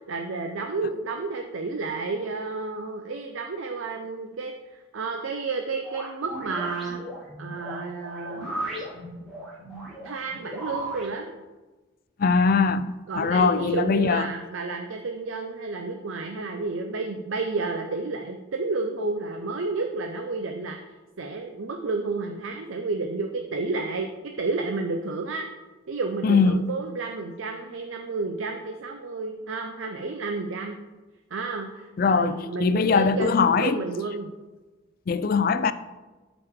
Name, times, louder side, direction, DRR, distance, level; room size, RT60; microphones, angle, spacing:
voice 1, 0.1-7.0 7.4-8.5 10.0-11.3 13.1-20.8 21.2-25.5 25.9-30.8 31.3-34.3, right 3 dB, 75° right, 0.6 m, -31 dB
sound 1, 5.8-11.1, right 1 dB, ahead, 2.8 m, -36 dB
voice 2, 12.2-14.3 26.2-26.7 32.0-33.8 35.1-35.7, left 5 dB, 45° left, 0.3 m, -21 dB
12.5 x 5.0 x 3.6 m
head